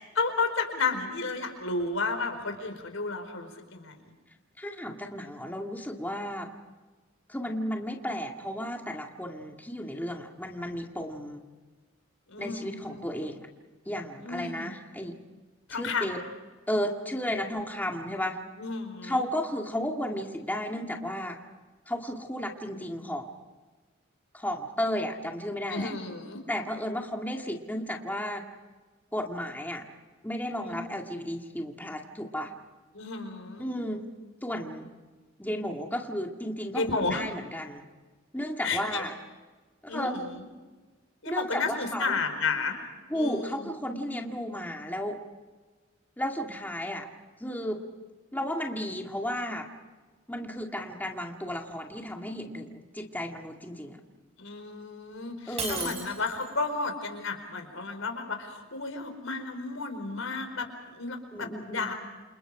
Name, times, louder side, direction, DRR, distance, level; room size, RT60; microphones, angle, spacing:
voice 1, 0.1-4.0 12.3-13.0 14.2-14.7 15.7-16.2 18.6-19.3 25.7-26.4 30.6-30.7 32.9-33.7 36.7-37.2 38.6-39.0 39.9-40.3 41.2-42.7 43.1-43.7 54.4-61.9, left 4 dB, 90° left, 6 dB, 4.6 m, -32 dB
voice 2, 4.6-6.5 7.3-11.4 12.4-13.5 13.9-15.2 15.7-16.2 16.7-18.4 19.0-21.4 21.9-23.3 24.3-25.9 26.5-28.4 29.1-29.8 30.2-32.5 33.6-34.1 34.4-34.9 35.4-37.8 38.3-39.1 39.9-40.1 41.3-42.1 43.1-45.2 46.2-47.1 47.4-47.8 48.3-49.7 50.3-54.0 55.5-55.9 61.3-61.9, equal, 10° left, 2 dB, 2.1 m, -33 dB
Shatter, 55.6-56.6, right 4 dB, 35° right, 5.8 m, -35 dB
29.0 x 27.5 x 4.9 m, 1.3 s
head